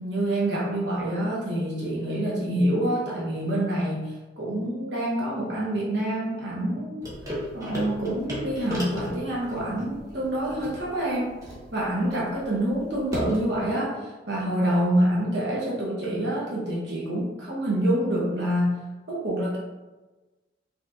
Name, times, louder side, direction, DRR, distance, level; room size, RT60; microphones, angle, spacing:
voice 1, 0.0-7.0 7.3-11.3 11.7-18.8 19.1-19.6, right 1 dB, 60° right, -5 dB, 0.7 m, -27 dB
sound 1, 7.0-13.6, equal, 15° right, 0.9 m, -36 dB
4.3 x 2.8 x 2.4 m, 1.2 s
head